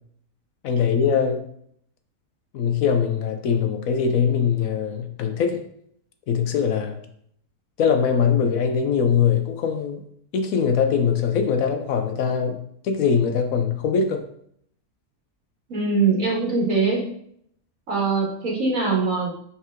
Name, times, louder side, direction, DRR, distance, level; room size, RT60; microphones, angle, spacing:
voice 1, 0.6-1.4 2.5-5.6 6.3-7.0 7.8-10.0 10.3-12.6 12.8-14.2, left 6 dB, 70° left, 7 dB, 1.0 m, -22 dB
voice 2, 15.7-17.0 17.9-19.3, right 4 dB, 60° right, -2 dB, 1.8 m, -22 dB
5.6 x 4.7 x 3.6 m, 0.68 s
omnidirectional pair, 1.6 m